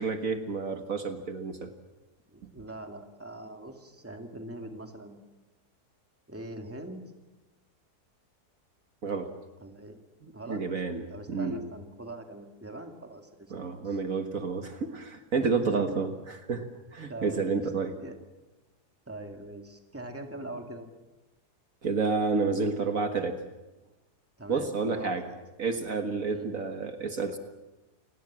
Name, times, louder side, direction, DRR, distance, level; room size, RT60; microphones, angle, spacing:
voice 1, 0.0-1.7 9.0-9.3 10.2-11.6 13.5-17.9 21.8-23.4 24.5-25.3 25.6-27.4, right 4 dB, 60° right, 6 dB, 1.9 m, -30 dB
voice 2, 2.3-5.2 6.3-7.0 9.6-10.0 10.3-10.6 11.1-13.5 13.8-14.0 15.4-16.0 17.1-17.6 18.0-18.2 19.1-20.9 24.4-25.4 26.3-26.5, right 1 dB, 10° right, 4 dB, 2.2 m, -42 dB
29.5 x 18.5 x 7.5 m, 1.1 s
omnidirectional pair, 1.7 m